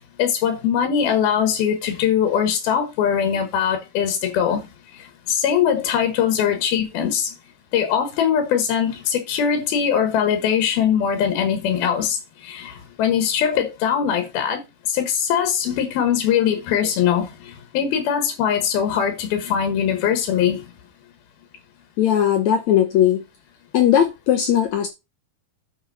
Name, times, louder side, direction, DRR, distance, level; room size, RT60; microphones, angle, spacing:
voice 1, 0.2-4.7 4.9-7.3 7.7-14.6 14.9-20.6, left 8 dB, 85° left, 3.4 m, -21 dB
voice 2, 22.0-23.2 23.7-24.9, left 10 dB, 70° left, 1.7 m, -18 dB
9.8 x 6.1 x 4.1 m
omnidirectional pair, 4.2 m